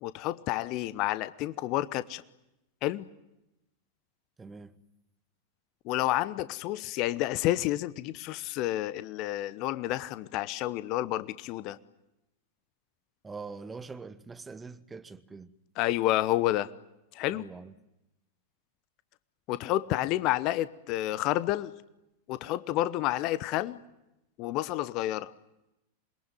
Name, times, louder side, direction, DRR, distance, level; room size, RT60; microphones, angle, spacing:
voice 1, 0.0-2.2 2.8-3.1 5.8-11.8 15.8-16.7 17.1-17.5 19.5-21.7 22.3-23.8 24.4-25.3, left 15 dB, 40° left, 0.9 m, -30 dB
voice 2, 4.4-4.7 13.2-15.5 17.3-17.7, right 4 dB, 15° right, 1.4 m, -43 dB
27.5 x 22.0 x 9.6 m
figure-of-eight pair, 90°, 0 cm